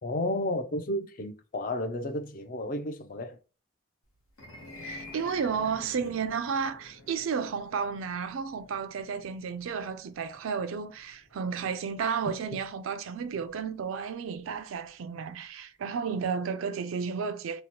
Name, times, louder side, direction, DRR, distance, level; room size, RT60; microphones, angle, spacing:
voice 1, 0.0-3.4, left 1 dB, 40° left, 0.4 m, -32 dB
sound 1, 4.3-14.6, left 2 dB, 90° left, 1.0 m, -49 dB
voice 2, 4.8-17.6, right 6 dB, 75° right, 0.4 m, -32 dB
2.9 x 2.1 x 2.8 m
head